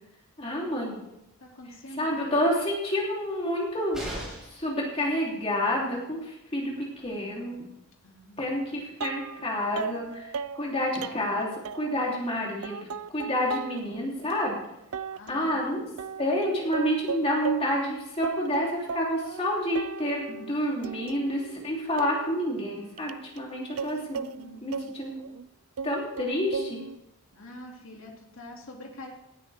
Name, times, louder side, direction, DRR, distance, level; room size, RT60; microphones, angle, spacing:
voice 1, 0.4-1.0 1.9-4.0 4.4-7.6 8.4-14.6 15.3-15.8 16.2-24.2 24.6-25.1 25.8-26.8, equal, 25° left, -3 dB, 3.4 m, -29 dB
voice 2, 1.4-2.3 8.0-8.5 15.1-15.9 24.4-24.9 27.3-29.1, left 1 dB, 65° left, 0 dB, 2.8 m, -46 dB
sound 1, 3.9-4.7 6.6-6.7 7.0-7.1, equal, ahead, 5.8 m, -37 dB
sound 2, 9.0-9.5 9.8-12.3 12.6-13.8 14.2-14.3 14.9-15.5 16.0-17.9 18.2-19.5 19.8-20.5 20.8-25.5 25.8-27.0, right 5 dB, 75° right, 0.5 m, -37 dB
19.0 x 12.5 x 3.6 m, 0.85 s
head